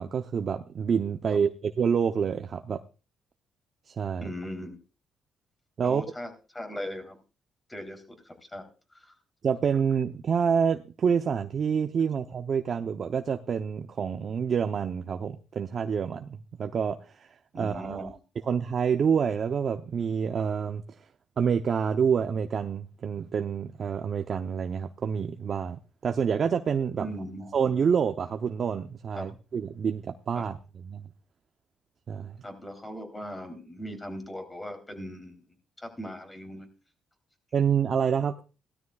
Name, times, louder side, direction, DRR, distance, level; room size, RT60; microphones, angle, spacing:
voice 1, 0.0-2.8 3.9-4.3 5.8-6.0 9.4-17.3 17.5-18.1 18.5-20.8 21.4-27.1 27.5-31.1 32.1-32.4 37.5-38.4, right 7 dB, 50° right, 0.7 m, -27 dB
voice 2, 4.2-4.8 5.8-7.2 7.7-8.6 8.9-9.1 17.5-18.1 27.0-27.4 29.1-29.3 30.3-30.4 32.4-35.4 35.8-36.7, equal, 20° left, 3.3 m, -39 dB
17.0 x 12.5 x 2.3 m
cardioid pair, 90°, 0 cm